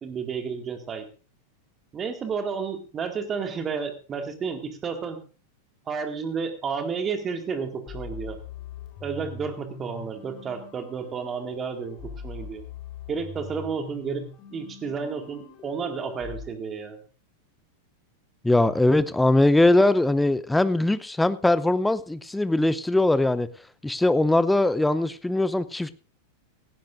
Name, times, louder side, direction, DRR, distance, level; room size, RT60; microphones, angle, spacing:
voice 1, 0.0-1.0 1.9-5.2 5.9-8.4 9.0-12.6 13.1-14.2 14.5-17.0, right 5 dB, 25° right, 2.1 m, -31 dB
sound 1, 7.9-16.4, left 5 dB, 35° left, 3.8 m, -41 dB
voice 2, 18.4-23.5 23.8-25.9, left 2 dB, 5° left, 0.7 m, -21 dB
18.0 x 15.5 x 2.6 m
figure-of-eight pair, 90°, 0 cm